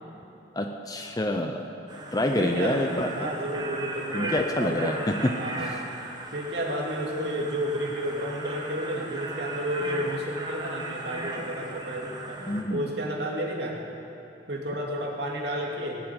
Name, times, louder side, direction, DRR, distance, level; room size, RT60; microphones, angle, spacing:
voice 1, 0.5-1.7 2.1-3.3 4.1-5.1 5.6-5.8 12.5-12.9, left 1 dB, 20° left, 4 dB, 0.7 m, -27 dB
sound 1, 1.9-12.6, right 2 dB, 25° right, 1.4 m, -37 dB
voice 2, 2.4-5.0 5.4-5.9 6.3-13.8 14.5-16.0, equal, 70° right, -1 dB, 2.5 m, -32 dB
19.0 x 7.6 x 9.7 m, 2.9 s
head